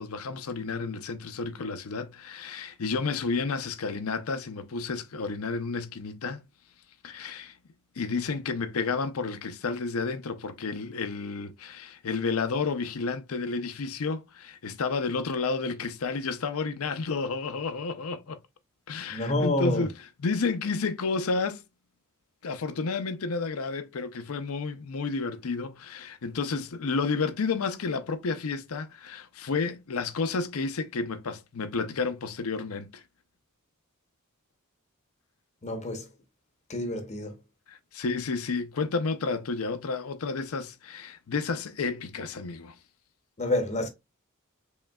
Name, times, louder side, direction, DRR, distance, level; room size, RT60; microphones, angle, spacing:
voice 1, 0.0-6.4 7.0-7.5 8.0-18.4 18.9-19.9 20.2-21.6 22.4-33.0 37.7-42.8, left 4 dB, 70° left, 0.6 m, -31 dB
voice 2, 19.1-19.9 35.6-36.1 36.7-37.4 43.4-43.9, left 2 dB, 35° left, 0.7 m, -28 dB
4.9 x 3.2 x 2.3 m
head